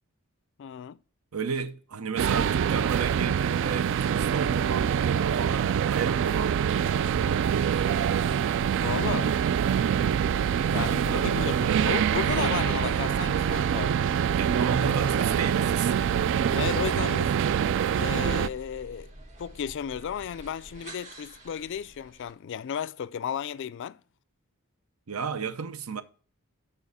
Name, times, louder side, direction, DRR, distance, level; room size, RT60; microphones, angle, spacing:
voice 1, 0.6-1.0 8.8-9.4 10.7-13.9 16.5-17.3 18.0-19.1 19.4-24.0, left 8 dB, 55° left, 0.3 m, -34 dB
voice 2, 1.3-7.7 10.7-11.8 14.4-15.9 25.1-26.0, right 6 dB, 80° right, 0.7 m, -33 dB
sound 1, 2.2-18.5, right 8 dB, 60° right, 0.3 m, -25 dB
sound 2, 6.4-22.3, equal, 35° right, 1.5 m, -48 dB
7.1 x 5.4 x 4.1 m
head